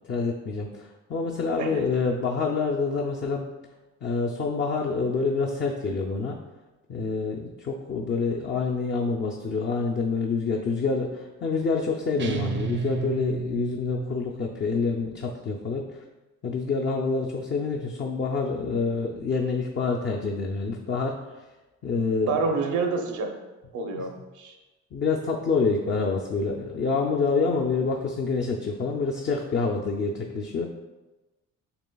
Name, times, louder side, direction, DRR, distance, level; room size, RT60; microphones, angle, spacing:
voice 1, 0.1-3.5 4.0-6.4 6.9-16.0 16.4-21.2 21.8-22.3 23.9-24.0 24.9-30.7, left 4 dB, 40° left, 0 dB, 0.5 m, -27 dB
sound 1, 12.2-14.8, right 5 dB, 40° right, 0.5 m, -32 dB
voice 2, 22.3-23.3 23.7-24.6, right 4 dB, 80° right, 4 dB, 0.8 m, -28 dB
6.9 x 3.3 x 2.3 m, 1.1 s
cardioid pair, 90°, 30 cm